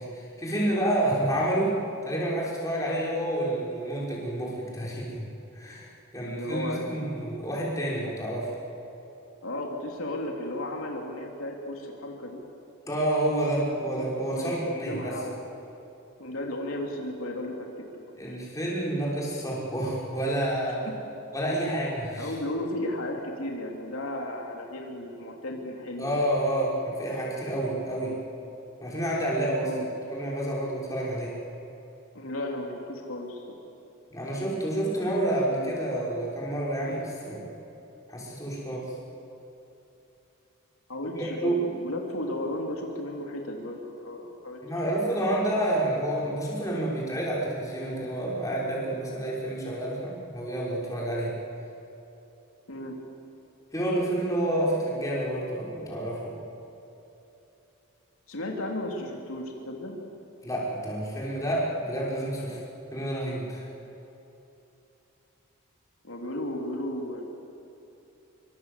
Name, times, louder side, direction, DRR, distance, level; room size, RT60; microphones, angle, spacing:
voice 1, 0.0-1.8 2.1-5.2 5.5-8.5 12.9-15.2 18.2-20.9 21.3-22.3 26.0-28.2 28.8-29.8 30.1-31.4 34.1-37.4 38.1-38.9 41.1-41.6 44.6-51.4 53.7-56.3 60.4-62.6 62.9-63.7, right 1 dB, 15° left, -5 dB, 5.8 m, -29 dB
voice 2, 6.2-7.0 9.4-12.4 14.2-15.3 16.2-17.8 20.8-20.9 22.2-26.2 29.6-29.9 32.1-33.4 40.9-44.6 52.7-53.0 58.3-60.0 66.0-67.2, left 1 dB, 75° left, 0 dB, 3.3 m, -34 dB
26.0 x 25.0 x 8.4 m, 3.0 s
head